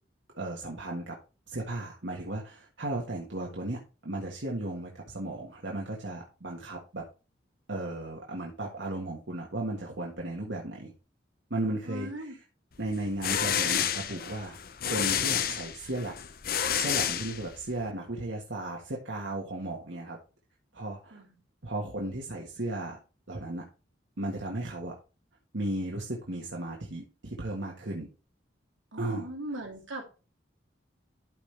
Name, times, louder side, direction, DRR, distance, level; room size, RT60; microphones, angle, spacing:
voice 1, 0.4-1.2 1.5-7.0 7.7-10.9 11.5-12.4 12.8-14.6 14.8-16.2 16.7-20.2 20.7-21.2 21.6-23.0 23.3-23.6 24.2-24.9 25.5-28.1 29.0-29.3, right 2 dB, 70° right, -2 dB, 1.6 m, -35 dB
voice 2, 11.9-12.3 21.1-21.3 28.9-30.1, right 1 dB, 90° right, 0 dB, 3.4 m, -39 dB
sound 1, 12.9-17.8, left 9 dB, 50° left, 0.7 m, -30 dB
12.5 x 5.0 x 3.4 m, 0.32 s
head